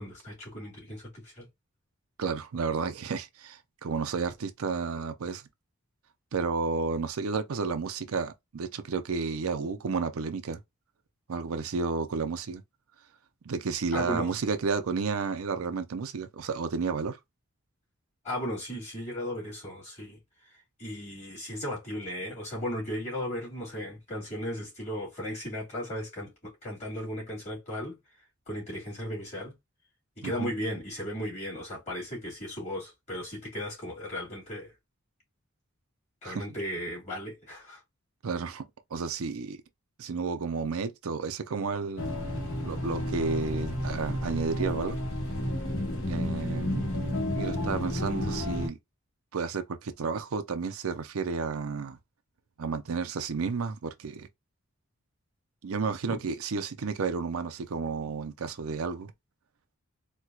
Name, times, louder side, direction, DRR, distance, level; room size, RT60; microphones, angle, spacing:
voice 1, 0.0-1.5 13.9-14.3 18.2-20.2 20.8-28.0 28.5-29.6 30.2-34.7 36.2-37.8 56.1-56.2, equal, 30° left, 2.4 m, -36 dB
voice 2, 2.2-5.4 6.3-10.6 11.3-12.6 13.5-17.2 30.2-30.5 36.2-36.4 38.2-38.6 38.9-39.6 40.0-42.1 42.6-45.0 46.1-46.8 47.3-48.8 49.3-52.0 52.6-54.3 55.6-59.1, right 5 dB, 80° right, 0.5 m, -31 dB
sound 1, 42.0-48.7, left 1 dB, 65° left, 1.3 m, -31 dB
4.3 x 2.2 x 2.3 m
head